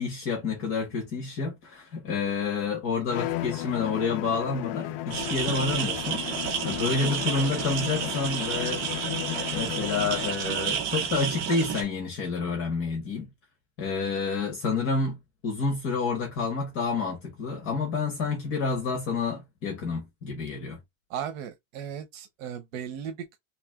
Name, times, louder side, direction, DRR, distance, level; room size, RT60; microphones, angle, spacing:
voice 1, 0.0-8.8 9.5-13.3 13.8-15.2 15.4-20.8, left 4 dB, 35° left, 1.4 m, -29 dB
Bowed string instrument, 3.1-10.5, left 15 dB, 50° left, 0.4 m, -34 dB
sound 1, 5.1-11.8, right 8 dB, 40° right, 0.9 m, -31 dB
voice 2, 21.1-23.4, right 8 dB, 90° right, 0.9 m, -36 dB
3.2 x 3.1 x 3.6 m
cardioid pair, 180°, 39 cm